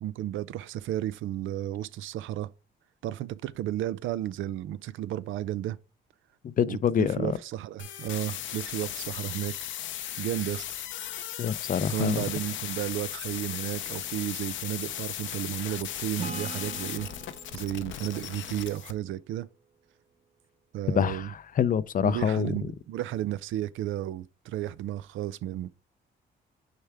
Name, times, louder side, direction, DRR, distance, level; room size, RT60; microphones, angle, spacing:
voice 1, 0.0-2.5 3.0-5.8 6.7-9.6 10.2-10.6 11.9-17.1 17.5-19.5 20.7-21.3 22.0-25.7, right 13 dB, 80° right, 0.5 m, -33 dB
voice 2, 6.4-7.4 11.4-12.2 20.9-22.5, left 8 dB, 45° left, 0.5 m, -26 dB
sound 1, 7.8-18.9, left 11 dB, 75° left, 0.7 m, -37 dB
Acoustic guitar / Strum, 16.2-19.6, right 5 dB, 30° right, 0.8 m, -43 dB
6.6 x 4.5 x 3.5 m
cardioid pair, 90°, 20 cm